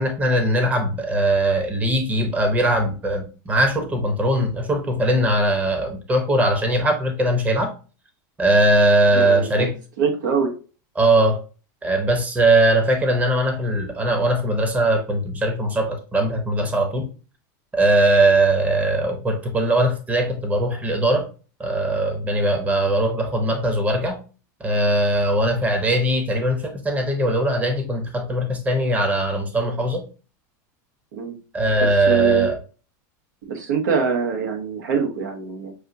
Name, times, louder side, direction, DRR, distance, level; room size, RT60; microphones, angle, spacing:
voice 1, 0.0-7.7 8.4-9.7 11.0-11.4 11.8-17.1 17.7-21.3 21.6-24.2 24.6-30.0 31.5-32.6, right 1 dB, 15° right, 4 dB, 0.8 m, -20 dB
voice 2, 9.2-9.7 10.0-10.5 31.1-31.4 31.8-32.5 33.5-35.7, right 6 dB, 85° right, 3 dB, 1.2 m, -23 dB
6.2 x 2.5 x 2.7 m, 0.35 s
supercardioid pair, 130°, 10 cm